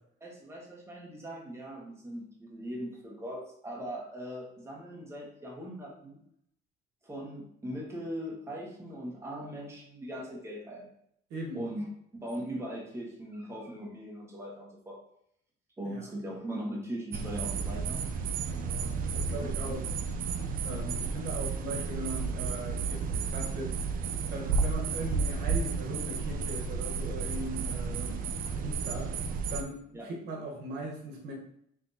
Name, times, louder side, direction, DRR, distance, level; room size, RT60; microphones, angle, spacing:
voice 1, 0.2-6.2 7.0-10.9 11.5-11.9 12.1-15.0 15.8-18.0 19.6-19.7 29.9-30.1, equal, 15° right, -2 dB, 1.3 m, -40 dB
voice 2, 11.3-11.6 15.8-16.1 18.5-19.9 20.6-23.9 24.2-29.2 29.5-31.3, right 1 dB, 85° right, -1 dB, 1.1 m, -39 dB
sound 1, 17.1-29.6, right 5 dB, 55° right, 0.5 m, -32 dB
5.9 x 2.8 x 2.7 m, 0.72 s
cardioid pair, 110°, 17 cm